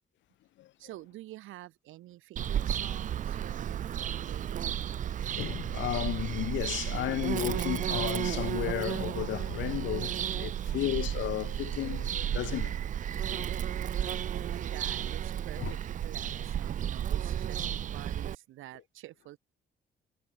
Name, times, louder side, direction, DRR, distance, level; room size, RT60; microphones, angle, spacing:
voice 1, 0.8-4.8 10.5-11.0 13.9-19.4, right 16 dB, 85° right, 0.9 m, -48 dB
Bird vocalization bird call bird song, 2.4-18.4, right 10 dB, 40° right, 0.4 m, -33 dB
voice 2, 5.4-12.8 15.6-15.7, left 15 dB, 70° left, 0.5 m, -33 dB
cardioid pair, 90°, 20 cm